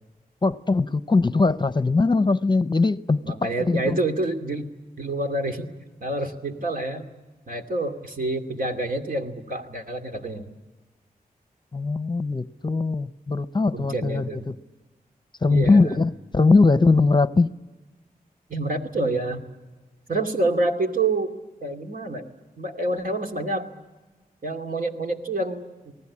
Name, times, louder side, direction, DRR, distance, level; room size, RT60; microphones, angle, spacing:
voice 1, 0.4-4.0 11.7-14.5 15.4-17.5, left 3 dB, 30° left, 0.8 m, -21 dB
voice 2, 3.2-5.7 6.0-7.1 7.5-10.5 13.7-14.5 15.4-16.0 18.5-19.4 20.1-22.3 22.6-23.7 24.4-25.7, right 2 dB, 65° right, 2.6 m, -27 dB
28.0 x 19.0 x 8.6 m
wide cardioid pair, 60°, 16 cm